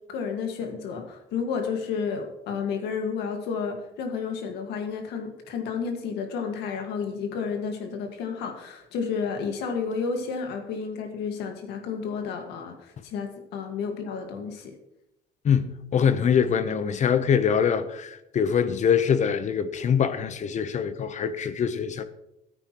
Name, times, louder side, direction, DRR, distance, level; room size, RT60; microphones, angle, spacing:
voice 1, 0.1-14.8, left 5 dB, 85° left, 1.9 m, -31 dB
voice 2, 15.4-22.0, left 7 dB, 45° left, 0.9 m, -24 dB
14.5 x 9.0 x 3.1 m
cardioid pair, 110°, 17 cm